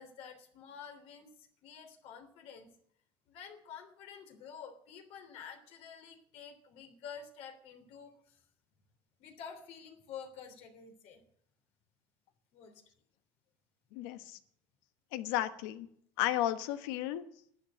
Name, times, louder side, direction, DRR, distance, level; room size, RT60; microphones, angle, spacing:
voice 1, 0.0-2.7 3.3-8.4 9.2-11.2 12.5-12.8, left 7 dB, 65° left, 4 dB, 3.3 m, -49 dB
voice 2, 13.9-14.4 15.1-15.9 16.2-17.2, left 13 dB, 85° left, 11 dB, 1.2 m, -33 dB
12.0 x 8.7 x 9.1 m, 0.65 s
supercardioid pair, 115°, 11 cm